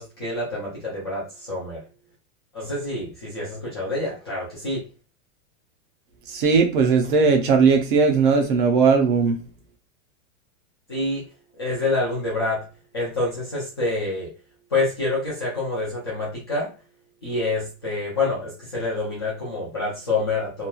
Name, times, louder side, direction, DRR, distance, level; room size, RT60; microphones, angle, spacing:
voice 1, 0.0-1.8 2.5-4.8 10.9-11.2 11.6-12.6 12.9-14.3 14.7-16.7 17.2-20.7, left 2 dB, 20° left, -7 dB, 0.3 m, -27 dB
voice 2, 6.3-9.4, right 5 dB, 40° right, 4 dB, 0.5 m, -18 dB
2.9 x 2.2 x 2.3 m, 0.34 s
supercardioid pair, 175°, 42 cm